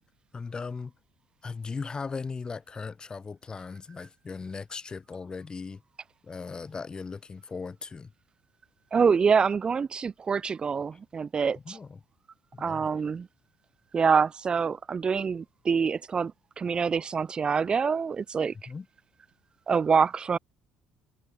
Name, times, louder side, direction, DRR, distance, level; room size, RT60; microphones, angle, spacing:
voice 1, 0.3-0.9 1.4-5.8 6.2-8.1 11.6-12.0 12.5-12.9 18.7-18.9, left 4 dB, 30° left, 1.3 m, -38 dB
voice 2, 8.9-11.8 12.6-13.3 13.9-18.5 19.7-20.4, right 6 dB, 30° right, 0.3 m, -26 dB
hypercardioid pair, 65°, 3 cm